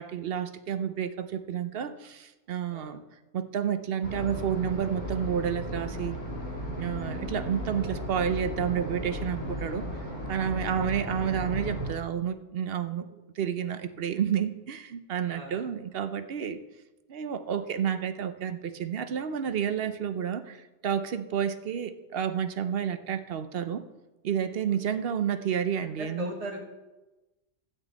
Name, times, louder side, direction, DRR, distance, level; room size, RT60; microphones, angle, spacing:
voice 1, 0.0-3.0 3.3-6.2 6.8-9.9 10.3-16.6 17.1-23.8 24.2-26.3, right 8 dB, 60° right, 11 dB, 0.7 m, -30 dB
sound 1, 4.0-11.9, equal, 35° left, 3.3 m, -35 dB
voice 2, 10.6-10.9 15.3-15.6 24.9-25.0 26.0-26.6, equal, 30° right, 0 dB, 1.3 m, -39 dB
13.0 x 4.4 x 8.2 m, 1.1 s
omnidirectional pair, 1.3 m